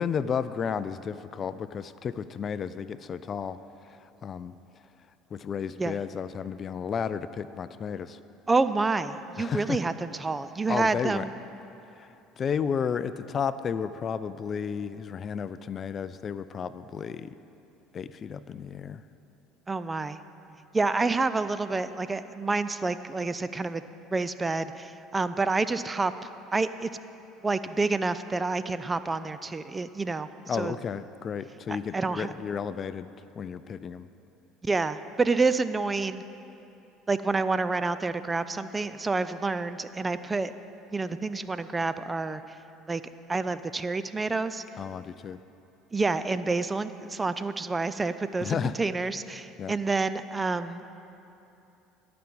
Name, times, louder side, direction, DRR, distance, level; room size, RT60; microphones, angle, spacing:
voice 1, 0.0-4.5 5.3-8.2 9.4-9.8 10.7-11.2 12.0-12.1 12.4-17.4 17.9-19.0 30.5-33.1 33.4-34.1 44.8-45.4 48.4-48.7 49.6-49.7, left 7 dB, 40° left, 14 dB, 0.4 m, -32 dB
voice 2, 8.5-11.3 19.7-20.2 20.7-23.8 24.1-26.9 27.4-30.7 31.7-32.3 34.6-36.2 37.1-40.5 40.9-42.6 42.9-43.0 43.3-44.6 45.9-50.9, right 3 dB, 20° right, 13 dB, 0.4 m, -28 dB
13.0 x 6.0 x 7.0 m, 2.8 s
hypercardioid pair, 70°, 0 cm